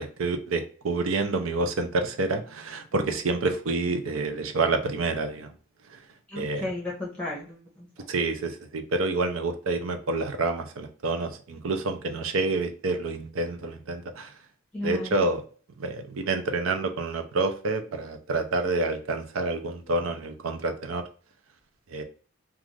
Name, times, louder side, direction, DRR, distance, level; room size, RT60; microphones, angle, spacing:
voice 1, 0.0-5.5 5.9-6.0 6.3-6.7 8.1-14.3 14.8-15.4 15.8-21.0 21.9-22.0, right 3 dB, 90° right, 7 dB, 0.5 m, -28 dB
voice 2, 6.3-7.9 14.7-15.2, left 1 dB, 5° left, -4 dB, 0.7 m, -34 dB
2.4 x 2.4 x 3.1 m, 0.40 s
head